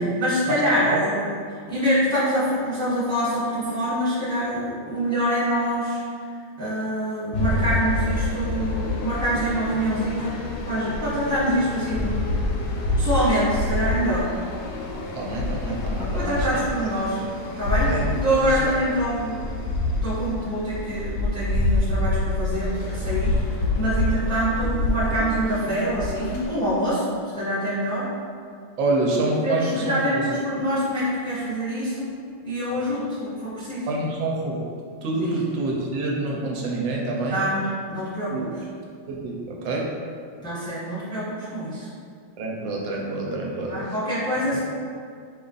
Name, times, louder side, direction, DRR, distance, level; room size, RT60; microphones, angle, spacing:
voice 1, 0.0-1.3 1.7-6.0 6.6-10.4 10.6-12.2 13.0-14.3 16.0-17.2 17.6-17.9 18.2-19.4 20.0-23.3 23.8-28.1 29.1-32.1 32.4-33.9 35.2-35.4 37.3-38.7 40.4-41.9 43.7-44.6, equal, 5° left, -11 dB, 0.9 m, -25 dB
sound 1, 7.3-26.5, left 2 dB, 70° left, 1.1 m, -27 dB
voice 2, 15.1-16.9 17.9-18.1 18.4-18.7 28.8-30.2 33.0-33.1 33.9-34.7 35.0-37.4 38.3-38.5 39.1-39.9 42.4-43.9, right 2 dB, 75° right, -2 dB, 1.3 m, -27 dB
5.0 x 2.4 x 3.9 m, 2.2 s
omnidirectional pair, 2.1 m